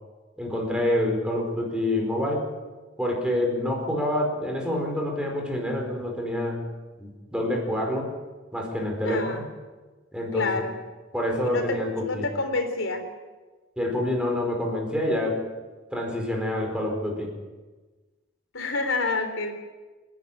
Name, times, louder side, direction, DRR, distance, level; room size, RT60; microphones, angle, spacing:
voice 1, 0.4-2.5 3.0-6.7 7.0-8.1 8.5-9.4 10.1-10.5 11.1-12.2 13.8-15.4 15.9-17.3, left 1 dB, 5° right, 0 dB, 4.8 m, -27 dB
voice 2, 9.0-9.4 10.3-10.7 11.4-13.0 18.5-19.5, left 3 dB, 85° left, 5 dB, 3.8 m, -28 dB
28.0 x 11.0 x 8.7 m, 1.3 s
head